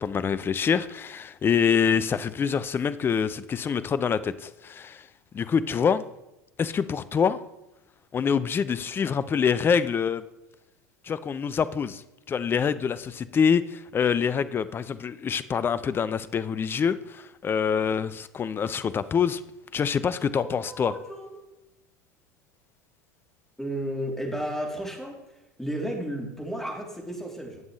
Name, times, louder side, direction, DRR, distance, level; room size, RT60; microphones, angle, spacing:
voice 1, 0.0-5.1 5.3-6.0 6.6-7.4 8.1-10.2 11.0-12.0 12.3-19.4 19.7-20.9, left 7 dB, 25° left, 15 dB, 0.5 m, -25 dB
voice 2, 20.3-21.4 23.6-27.6, right 1 dB, 5° left, -1 dB, 3.1 m, -33 dB
18.5 x 7.2 x 3.2 m, 0.97 s
figure-of-eight pair, 75°, 9 cm